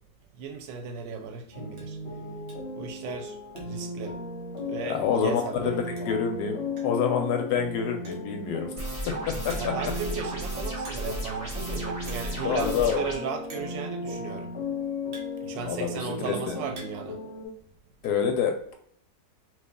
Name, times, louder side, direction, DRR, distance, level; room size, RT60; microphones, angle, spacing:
voice 1, 0.4-2.0 2.8-3.4 3.6-4.1 4.7-6.0 9.5-14.5 15.4-17.2, right 6 dB, 90° right, 5 dB, 1.3 m, -36 dB
sound 1, 1.5-17.5, left 3 dB, 45° left, 0.9 m, -36 dB
sound 2, 1.8-2.0 2.5-2.8 3.1-3.9 4.2-4.3 4.6-4.7 5.7-5.8 6.0-6.3 6.8-7.1 7.9-8.4 8.9-9.0 9.5-10.0 10.8-11.3 11.5-11.7 12.0-12.4 12.6-12.7 13.5-13.8 14.6-15.9 16.4-17.2 17.4-18.1, right 3 dB, 60° right, 1.1 m, -49 dB
voice 2, 4.9-8.7 9.3-9.5 12.4-13.1 15.7-16.5 18.0-18.7, left 7 dB, 75° left, 5 dB, 1.1 m, -27 dB
sound 3, 8.8-13.2, right 1 dB, 20° right, 0.9 m, -34 dB
3.1 x 2.7 x 3.5 m, 0.64 s
omnidirectional pair, 1.9 m